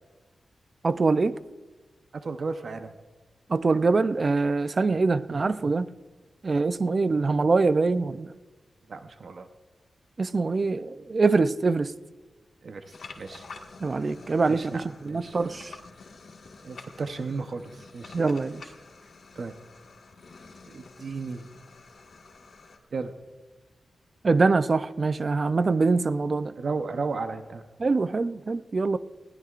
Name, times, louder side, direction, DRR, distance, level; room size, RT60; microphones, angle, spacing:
voice 1, 0.8-1.3 3.5-5.9 6.4-8.3 10.2-11.9 13.8-15.7 18.1-18.6 24.2-26.5 27.8-29.0, right 3 dB, 40° right, 0.5 m, -24 dB
voice 2, 2.2-3.0 4.9-5.0 8.9-9.5 12.6-13.4 14.5-15.4 16.6-18.2 19.4-19.5 20.7-21.5 22.9-23.1 26.6-27.6, right 4 dB, 60° right, 0.9 m, -34 dB
sound 1, 12.8-22.8, left 4 dB, 65° left, 1.7 m, -48 dB
20.5 x 17.0 x 2.5 m
wide cardioid pair, 125°, 0 cm